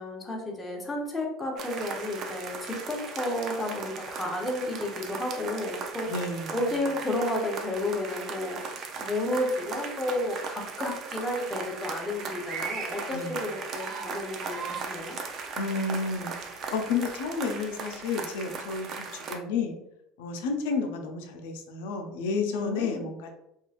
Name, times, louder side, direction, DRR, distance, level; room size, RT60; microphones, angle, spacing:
voice 1, 0.0-6.1 6.5-8.6 9.0-15.2 22.5-23.1, left 1 dB, 10° left, -1 dB, 0.7 m, -32 dB
sound 1, 1.6-19.4, right 5 dB, 45° right, 0.4 m, -37 dB
voice 2, 6.0-6.6 13.1-13.4 15.6-18.9 19.3-19.7 20.2-23.3, left 4 dB, 90° left, 4 dB, 0.4 m, -31 dB
2.9 x 2.3 x 2.4 m, 0.82 s
supercardioid pair, 125°, 0 cm